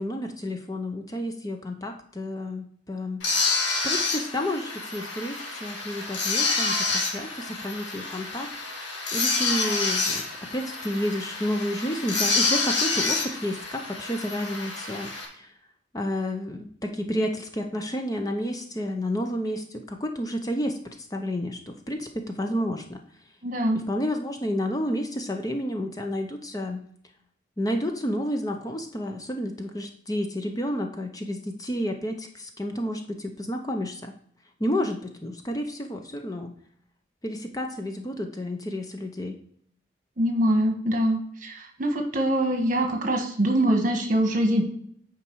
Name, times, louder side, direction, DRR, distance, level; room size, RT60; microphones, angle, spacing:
voice 1, 0.0-3.2 3.8-8.5 9.1-10.2 10.5-15.5 15.9-23.0 23.7-26.8 27.6-34.1 34.6-36.5 37.2-39.3, equal, 20° left, 4 dB, 0.7 m, -30 dB
sound 1, 3.2-15.2, left 3 dB, 80° left, 2.3 m, -28 dB
voice 2, 23.4-23.8 40.2-44.6, right 1 dB, 45° right, 4 dB, 1.4 m, -24 dB
8.8 x 5.1 x 4.6 m, 0.64 s
head